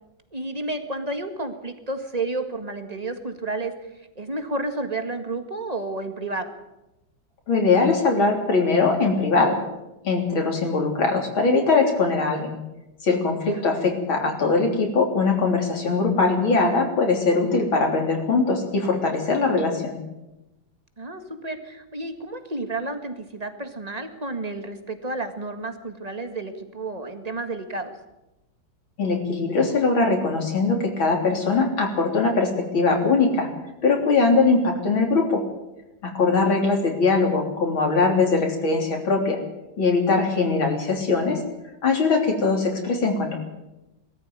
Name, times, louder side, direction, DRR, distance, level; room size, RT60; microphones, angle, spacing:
voice 1, 0.3-6.5 13.4-13.6 21.0-27.9 36.2-36.6, right 2 dB, 20° right, 7 dB, 1.8 m, -31 dB
voice 2, 7.5-9.6 10.0-12.6 13.0-19.9 29.0-33.5 33.8-35.4 36.0-39.4 39.8-41.4 41.8-43.4, left 3 dB, 80° left, 2 dB, 4.2 m, -21 dB
21.0 x 14.0 x 9.2 m, 0.96 s
omnidirectional pair, 2.2 m